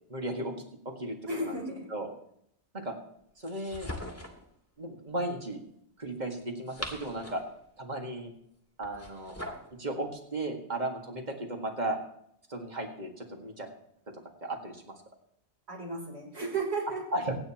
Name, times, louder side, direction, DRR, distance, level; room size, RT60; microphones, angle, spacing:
voice 1, 0.1-0.5 0.9-1.2 1.4-1.5 1.9-2.1 2.7-2.9 3.4-3.9 4.8-5.6 6.0-7.4 7.8-8.3 8.8-9.3 9.8-12.0 12.5-13.7 14.4-15.0 17.1-17.4, right 1 dB, 40° right, 3 dB, 2.0 m, -35 dB
voice 2, 1.3-1.9 15.7-17.0, right 3 dB, 70° right, -2 dB, 3.8 m, -34 dB
sound 1, 3.4-4.5 6.4-7.6 8.8-9.7, left 1 dB, 15° left, 2.0 m, -41 dB
25.5 x 9.2 x 3.0 m, 0.72 s
omnidirectional pair, 1.1 m